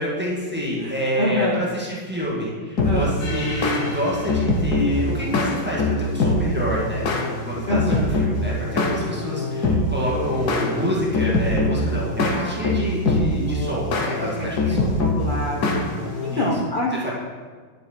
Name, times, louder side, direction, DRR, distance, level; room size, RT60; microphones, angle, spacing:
voice 1, 0.0-7.2 7.4-15.0 16.3-16.5 16.9-17.1, equal, 5° right, -6 dB, 1.6 m, -27 dB
voice 2, 0.8-1.6 2.8-3.2 7.7-8.1 12.3-13.3 14.2-15.8 16.2-17.1, left 1 dB, 85° left, -4 dB, 0.4 m, -27 dB
sound 1, 2.8-16.5, left 2 dB, 55° left, 1.4 m, -24 dB
10.5 x 5.6 x 4.4 m, 1.5 s
omnidirectional pair, 2.2 m